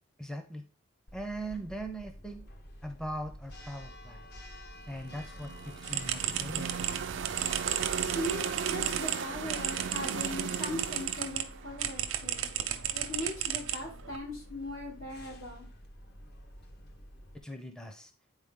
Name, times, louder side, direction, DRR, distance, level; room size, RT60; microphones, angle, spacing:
voice 1, 0.2-0.6 1.1-2.4 2.8-4.3 4.9-6.7 17.4-18.1, right 1 dB, 5° left, 0.6 m, -40 dB
Church bell, 1.1-17.4, left 1 dB, 50° left, 1.1 m, -49 dB
sound 1, 4.9-12.9, right 6 dB, 60° right, 0.4 m, -38 dB
sound 2, 5.8-11.4 11.8-14.2, right 10 dB, 80° right, 0.8 m, -34 dB
voice 2, 8.0-8.4 8.7-12.5 12.9-15.7, left 1 dB, 80° left, 3.4 m, -39 dB
9.7 x 4.1 x 3.7 m
head